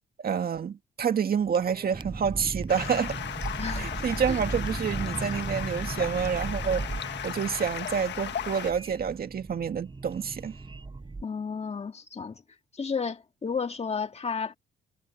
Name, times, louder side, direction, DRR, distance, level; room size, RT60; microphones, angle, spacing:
voice 1, 0.2-3.2 3.7-6.9 7.2-10.5, right 7 dB, 50° right, 2.0 m, -28 dB
sound 1, 1.4-11.2, right 3 dB, 25° right, 7.4 m, -37 dB
Stream, 2.7-8.7, left 9 dB, 65° left, 1.5 m, -36 dB
voice 2, 3.6-3.9 4.3-4.4 11.2-12.4 12.8-14.6, left 5 dB, 30° left, 1.9 m, -32 dB
cardioid pair, 90°, 20 cm